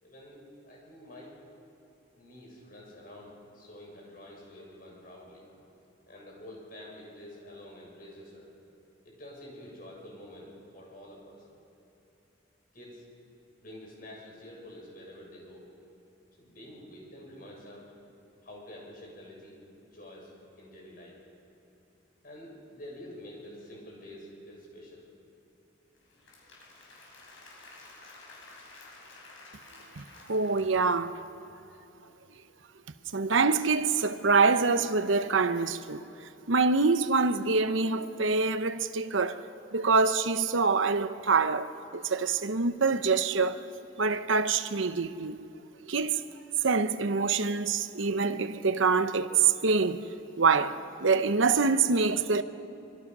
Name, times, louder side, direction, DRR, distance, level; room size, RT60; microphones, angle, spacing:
voice 1, 0.0-1.3 2.2-5.5 6.1-8.5 9.0-11.4 12.7-13.0 13.6-15.6 16.4-17.8 18.4-19.6 19.9-21.2 22.2-25.0, left 1 dB, 45° left, 7.0 m, -48 dB
Applause / Crowd, 25.9-31.3, left 2 dB, 80° left, 6.6 m, -52 dB
voice 2, 30.0-31.1 31.4-31.5 33.1-36.0 36.5-39.4 39.7-43.6 44.0-45.4 45.9-46.2 46.6-50.1 50.4-52.4, right 4 dB, 80° right, 0.9 m, -25 dB
25.5 x 24.5 x 6.2 m
head